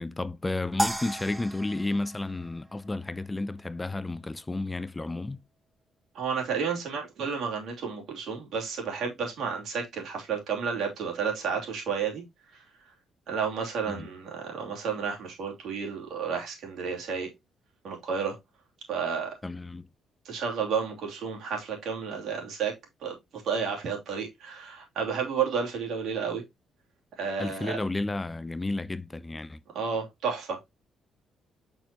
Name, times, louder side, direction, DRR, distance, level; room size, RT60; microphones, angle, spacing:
voice 1, 0.0-5.4 13.9-14.1 19.4-19.9 27.4-29.6, left 2 dB, 20° left, 0.5 m, -32 dB
sound 1, 0.8-3.2, right 1 dB, 10° right, 0.8 m, -34 dB
voice 2, 6.1-12.2 12.5-12.6 13.3-17.3 17.8-18.4 18.9-19.3 20.2-22.7 23.0-26.4 27.2-27.8 29.7-30.6, right 6 dB, 70° right, 2.9 m, -31 dB
6.8 x 5.9 x 2.9 m
cardioid pair, 90°, 0 cm